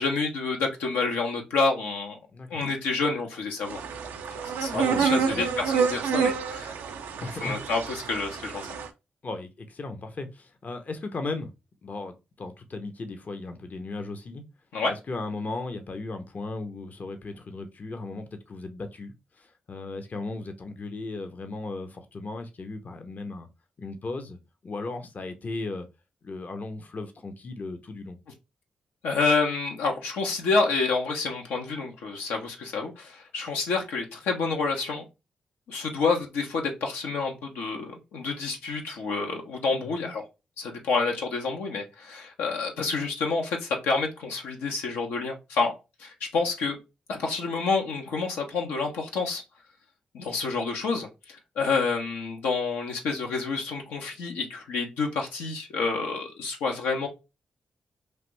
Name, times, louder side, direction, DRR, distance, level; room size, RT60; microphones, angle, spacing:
voice 1, 0.0-2.1 2.5-3.8 4.6-6.7 7.4-8.7 14.7-14.9 29.0-35.0 35.7-40.2 40.6-45.7 46.0-46.8 47.1-49.4 50.1-57.1, left 4 dB, 90° left, 0.7 m, -28 dB
voice 2, 2.3-2.6 4.7-5.5 7.2-7.6 9.2-11.5 11.8-14.4 14.9-23.5 23.8-25.9 26.2-28.2 39.8-40.1, left 3 dB, 50° left, 0.6 m, -36 dB
sound 1, 3.6-8.9, right 6 dB, 90° right, 0.4 m, -28 dB
3.2 x 2.5 x 3.0 m
supercardioid pair, 45°, 3 cm